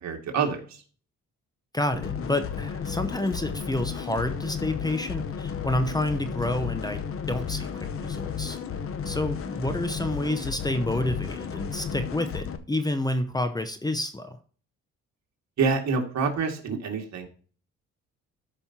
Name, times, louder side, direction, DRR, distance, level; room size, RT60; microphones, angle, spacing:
voice 1, 0.0-0.8 15.6-17.3, right 5 dB, 65° right, 3 dB, 2.1 m, -27 dB
voice 2, 1.7-8.6 9.0-14.4, left 1 dB, 15° left, 8 dB, 0.8 m, -29 dB
sound 1, 1.9-12.6, left 7 dB, 45° left, 0.9 m, -33 dB
13.0 x 5.5 x 2.8 m, 0.42 s
cardioid pair, 90°, 30 cm